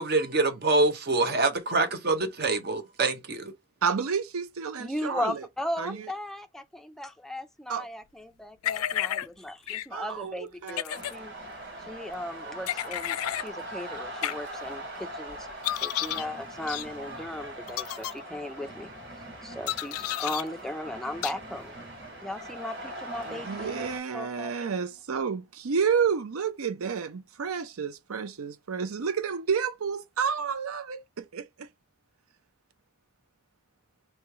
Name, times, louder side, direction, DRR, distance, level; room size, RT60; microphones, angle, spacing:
voice 1, 0.0-3.5, right 3 dB, 45° right, 0.7 m, -25 dB
voice 2, 3.8-5.4 5.8-6.1 7.7-7.8 9.9-10.8 23.3-31.7, right 6 dB, 90° right, 0.6 m, -30 dB
voice 3, 4.8-11.3 11.9-15.5 15.8-18.9 19.4-21.8 22.2-23.9 24.1-24.7, left 1 dB, ahead, 0.3 m, -37 dB
sound 1, 8.6-9.3 9.7-9.9 10.7-11.1 12.7-13.5 14.2-14.3 15.6-16.3 16.7-16.9 17.7-18.1 19.7-20.4 21.2-21.3, left 12 dB, 85° left, 0.3 m, -31 dB
sound 2, 10.9-24.0, right 1 dB, 65° right, 2.4 m, -41 dB
3.1 x 3.1 x 4.7 m
head